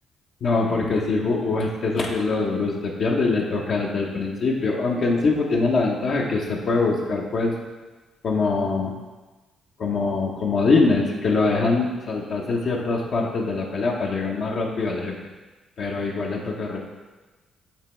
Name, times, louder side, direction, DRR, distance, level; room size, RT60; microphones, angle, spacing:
voice 1, 0.4-7.5 8.2-8.9 9.8-15.1 15.8-16.8, left 3 dB, 60° left, -2 dB, 0.8 m, -23 dB
7.2 x 3.0 x 4.3 m, 1.2 s
cardioid pair, 90°, 0 cm